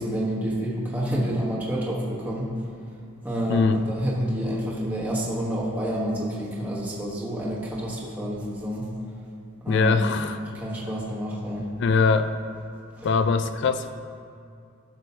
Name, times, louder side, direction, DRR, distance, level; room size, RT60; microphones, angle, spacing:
voice 1, 0.0-2.5 3.2-8.9 9.6-10.0 10.3-11.7 13.0-13.1, equal, 10° right, -6 dB, 1.1 m, -28 dB
voice 2, 3.5-3.8 9.7-10.6 11.8-12.3 13.0-13.9, left 4 dB, 55° left, 10 dB, 0.3 m, -22 dB
12.0 x 6.2 x 2.8 m, 2.4 s
head